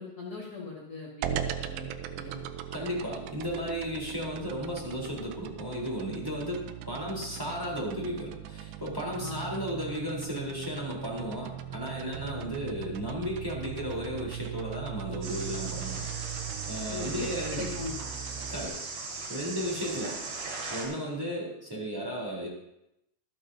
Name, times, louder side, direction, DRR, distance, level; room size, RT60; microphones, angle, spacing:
voice 1, 0.0-2.4 9.2-9.5 16.9-17.9, left 3 dB, 65° left, -5 dB, 0.9 m, -40 dB
sound 1, 1.2-18.7, right 10 dB, 85° right, 2.7 m, -39 dB
voice 2, 2.7-16.0 16.7-17.7 18.5-18.8 19.3-20.2 20.7-22.5, equal, 5° right, -4 dB, 3.0 m, -34 dB
sound 2, 15.2-20.9, right 3 dB, 65° right, 4.6 m, -38 dB
24.5 x 9.1 x 2.8 m, 0.82 s
omnidirectional pair, 4.9 m